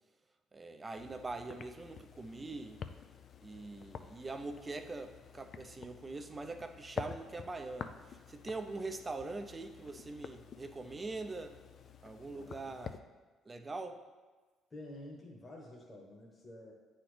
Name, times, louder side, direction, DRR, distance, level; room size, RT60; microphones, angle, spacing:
voice 1, 0.5-2.8 3.4-11.6 12.0-13.0 13.5-14.0, right 3 dB, 25° right, 7 dB, 0.6 m, -43 dB
sound 1, 1.0-13.0, left 6 dB, 55° left, 0.4 m, -49 dB
voice 2, 12.4-12.8 14.7-16.7, left 1 dB, 25° left, -2 dB, 1.3 m, -50 dB
9.1 x 4.3 x 3.3 m, 1.3 s
supercardioid pair, 80°, 0 cm